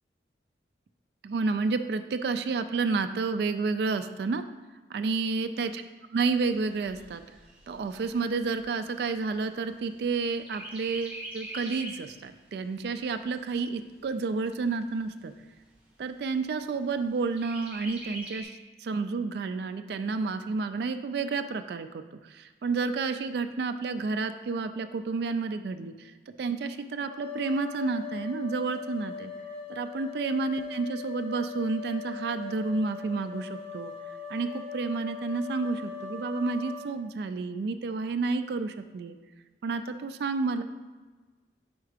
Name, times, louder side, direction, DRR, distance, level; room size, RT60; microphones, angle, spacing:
voice 1, 1.2-4.4 4.9-5.8 6.1-7.2 7.7-15.3 16.0-26.1 26.4-29.3 29.7-33.9 34.3-39.2 39.6-40.6, right 4 dB, 65° right, 8 dB, 0.3 m, -30 dB
Chirp tweet, 6.3-10.1 10.4-12.1 12.6-12.7 13.0-14.0 14.6-14.7 15.0-15.1 15.6-16.1 17.4-18.4, right 1 dB, 10° right, 1.5 m, -43 dB
sound 1, 27.1-36.9, left 6 dB, 35° left, 1.4 m, -40 dB
4.7 x 4.4 x 4.9 m, 1.3 s
head